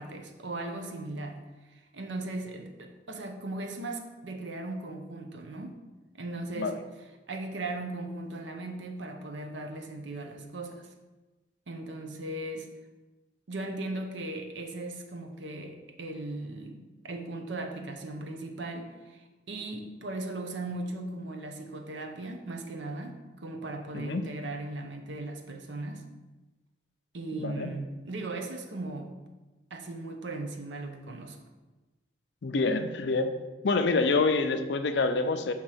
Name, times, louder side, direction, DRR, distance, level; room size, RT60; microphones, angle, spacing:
voice 1, 0.0-5.8 6.1-6.8 7.3-10.9 11.7-12.7 13.5-26.1 27.1-29.2 29.7-31.4, right 2 dB, 90° right, 4 dB, 0.7 m, -38 dB
voice 2, 23.9-24.3 27.4-27.7 32.4-33.3 33.6-35.5, left 3 dB, 70° left, 8 dB, 0.5 m, -27 dB
6.4 x 2.9 x 5.6 m, 1.2 s
head